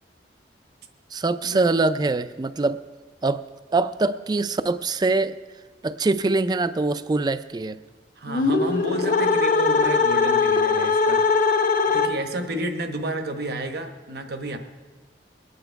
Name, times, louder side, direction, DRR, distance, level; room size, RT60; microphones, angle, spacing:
voice 1, 1.1-2.8 3.2-3.4 3.7-5.3 5.8-7.8, right 3 dB, 25° right, 13 dB, 0.4 m, -23 dB
voice 2, 8.2-11.2 11.9-14.6, right 1 dB, 60° right, 6 dB, 1.2 m, -31 dB
sound 1, 8.3-12.5, left 4 dB, 50° left, 0.9 m, -21 dB
21.5 x 8.9 x 4.6 m, 1.3 s
head